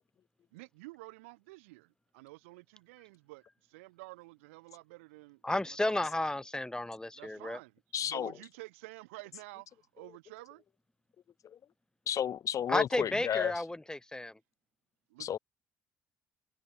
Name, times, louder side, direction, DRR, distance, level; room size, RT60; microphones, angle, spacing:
voice 1, 0.5-6.2 7.1-10.6 15.1-15.3, right 23 dB, 80° right, 7.6 m, -51 dB
voice 2, 5.4-7.6 12.7-14.3, left 1 dB, 10° left, 1.5 m, -32 dB
voice 3, 7.9-8.3 11.4-11.6 12.1-13.5 15.2-15.4, left 9 dB, 55° left, 0.9 m, -32 dB
hypercardioid pair, 50°, 7 cm